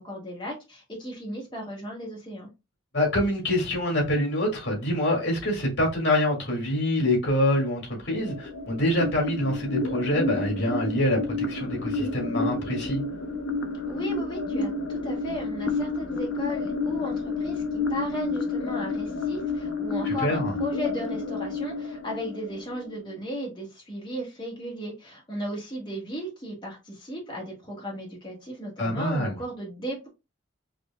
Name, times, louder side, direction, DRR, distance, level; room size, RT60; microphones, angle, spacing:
voice 1, 0.0-2.5 13.9-30.1, equal, 25° left, 1.4 m, -35 dB
voice 2, 2.9-13.0 20.0-20.6 28.8-29.4, left 1 dB, 70° left, 2.0 m, -25 dB
sound 1, 8.2-23.1, left 3 dB, 85° left, 0.6 m, -30 dB
4.9 x 2.7 x 2.2 m
head